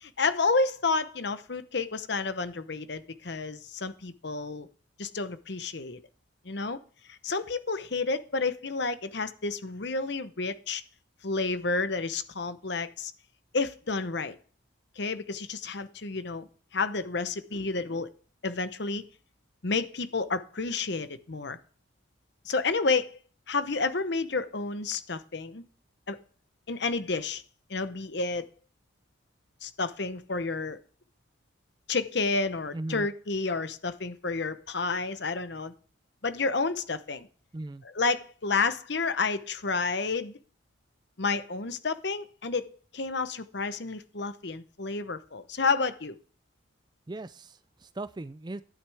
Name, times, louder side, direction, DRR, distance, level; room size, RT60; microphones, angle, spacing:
voice 1, 0.0-4.7 5.0-6.0 6.4-6.8 7.1-10.8 11.2-13.1 13.5-14.3 15.0-16.5 16.7-18.1 18.4-19.0 19.6-21.6 22.4-23.2 23.5-25.6 26.1-26.2 26.7-27.4 27.7-28.4 29.6-30.8 31.9-35.7 36.2-37.3 37.9-40.3 41.2-42.7 42.9-46.2, left 4 dB, 55° left, 12 dB, 0.9 m, -30 dB
voice 2, 32.7-33.1 37.5-37.8 47.1-48.6, right 2 dB, 20° right, 14 dB, 0.4 m, -38 dB
11.0 x 9.4 x 3.5 m, 0.39 s
head